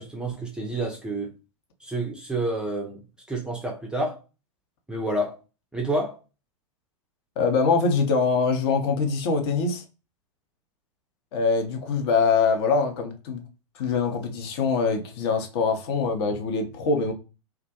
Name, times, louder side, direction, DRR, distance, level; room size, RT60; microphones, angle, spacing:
voice 1, 0.0-1.3 1.8-3.0 3.3-4.2 4.9-5.4 5.7-6.2, right 1 dB, 5° right, 0.4 m, -29 dB
voice 2, 7.4-9.8 11.3-13.4 13.8-17.1, left 4 dB, 45° left, 0.6 m, -23 dB
2.3 x 2.1 x 2.8 m
figure-of-eight pair, 100°, 17 cm